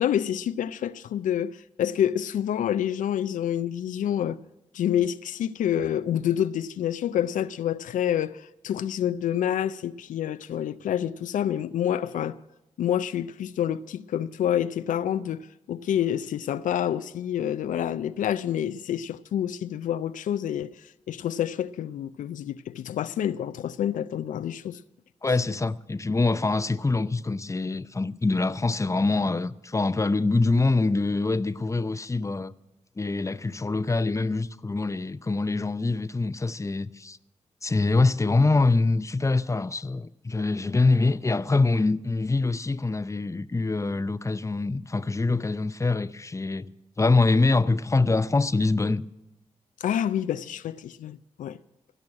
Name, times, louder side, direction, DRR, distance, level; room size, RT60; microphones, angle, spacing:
voice 1, 0.0-4.4 4.7-12.4 12.8-20.8 21.1-24.8 49.8-51.6, left 10 dB, 85° left, 0.4 m, -28 dB
voice 2, 25.2-32.5 33.0-37.2 37.6-46.7 47.0-49.1, left 3 dB, 25° left, 0.6 m, -24 dB
16.5 x 6.2 x 9.7 m
supercardioid pair, 40°, 13 cm